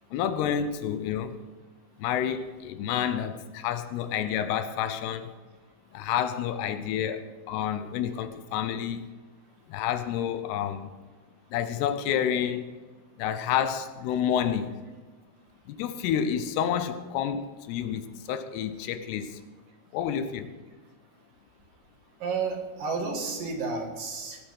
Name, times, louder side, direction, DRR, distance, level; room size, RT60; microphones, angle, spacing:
voice 1, 0.1-1.4 2.0-5.3 5.9-9.1 9.7-10.9 11.5-12.7 13.2-14.7 15.7-19.4 19.9-20.5, left 9 dB, 80° left, 10 dB, 2.8 m, -29 dB
voice 2, 22.2-24.4, right 4 dB, 60° right, 2 dB, 3.3 m, -31 dB
18.5 x 7.9 x 6.3 m, 1.3 s
omnidirectional pair, 4.8 m